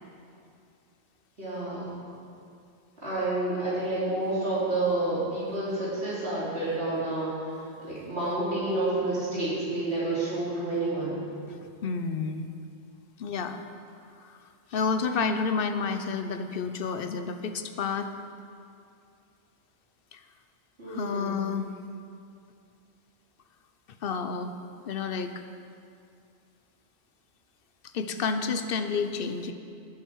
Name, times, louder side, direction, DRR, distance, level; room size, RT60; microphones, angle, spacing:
voice 1, 1.4-2.0 3.0-11.2 20.8-21.4, right 2 dB, 75° right, -10 dB, 3.8 m, -29 dB
voice 2, 11.5-12.5 13.2-13.6 14.2-14.4 14.7-18.1 20.1-20.2 20.9-21.7 24.0-24.5 24.8-25.3 27.9-29.5, left 5 dB, 60° left, 8 dB, 0.9 m, -30 dB
18.5 x 7.7 x 4.7 m, 2.4 s
omnidirectional pair, 1.1 m